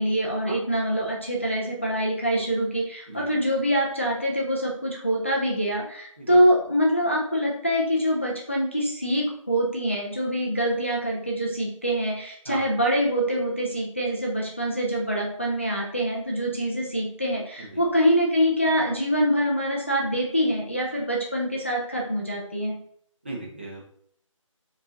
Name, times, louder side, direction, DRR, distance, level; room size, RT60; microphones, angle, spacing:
voice 1, 0.0-22.8, equal, 25° left, -3 dB, 0.4 m, -25 dB
voice 2, 23.2-23.8, right 2 dB, 20° right, -3 dB, 0.7 m, -37 dB
4.6 x 2.8 x 3.8 m, 0.65 s
figure-of-eight pair, 170°, 17 cm